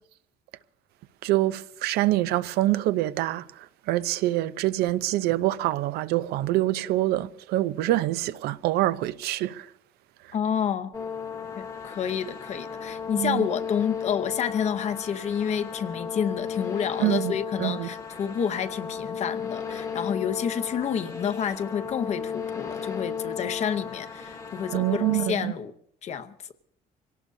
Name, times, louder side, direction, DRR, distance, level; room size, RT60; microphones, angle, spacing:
voice 1, 1.2-9.7 13.2-13.5 17.0-17.9 24.7-25.5, right 16 dB, 85° right, 0.6 m, -25 dB
voice 2, 10.3-10.9 11.6-25.7 26.0-26.3, left 8 dB, 45° left, 0.9 m, -29 dB
sound 1, 10.9-25.3, left 7 dB, 20° left, 1.2 m, -35 dB
26.0 x 17.5 x 2.7 m
cardioid pair, 155°, 16 cm